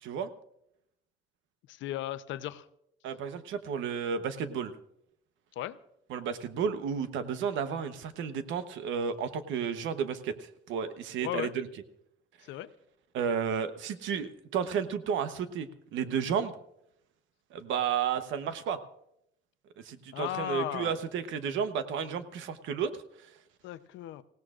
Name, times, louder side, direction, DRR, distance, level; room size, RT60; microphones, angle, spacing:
voice 1, 1.7-2.7 5.6-5.8 11.2-11.5 12.5-12.7 20.1-20.9 23.6-24.2, left 13 dB, 85° left, 13 dB, 0.7 m, -35 dB
voice 2, 3.0-4.7 6.1-11.7 13.1-16.5 17.5-18.8 19.8-22.9, right 7 dB, 90° right, 11 dB, 1.0 m, -32 dB
26.5 x 17.0 x 2.5 m, 0.78 s
cardioid pair, 160°, 19 cm